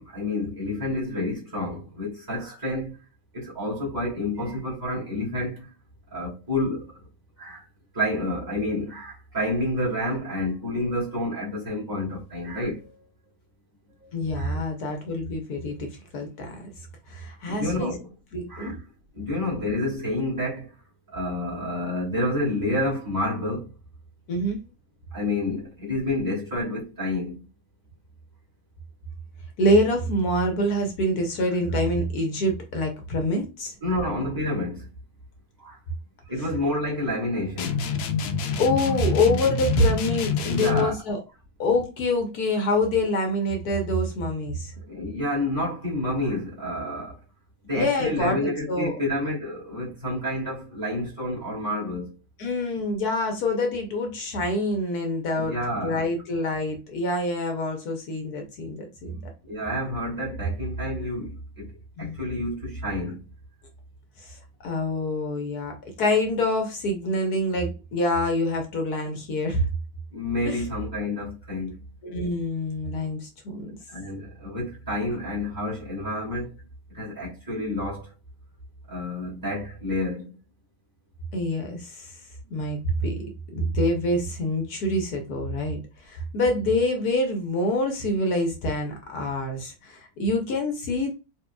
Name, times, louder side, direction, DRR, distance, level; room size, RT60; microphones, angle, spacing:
voice 1, 0.0-2.9 3.3-5.7 6.1-7.0 7.4-7.6 7.9-13.1 14.0-14.6 17.4-18.1 18.5-18.8 19.2-20.7 21.1-23.7 25.1-27.5 33.8-34.9 35.6-35.8 36.3-37.8 40.4-41.0 44.9-47.2 47.6-52.2 55.4-56.0 59.4-61.7 62.0-63.3 70.1-71.7 73.9-76.5 76.9-78.1 78.9-80.4, left 1 dB, 10° right, 1.7 m, -29 dB
voice 2, 14.1-16.6 17.1-17.9 18.3-18.7 24.3-24.6 29.6-33.7 38.6-41.2 41.6-44.7 47.7-48.9 52.4-59.2 62.0-62.2 64.2-69.7 70.5-70.6 72.0-73.7 81.3-82.2 82.5-83.2 83.5-91.1, left 1 dB, 60° left, 1.2 m, -26 dB
sound 1, 37.6-41.0, left 5 dB, 90° left, 1.4 m, -28 dB
4.4 x 2.8 x 2.2 m
omnidirectional pair, 2.1 m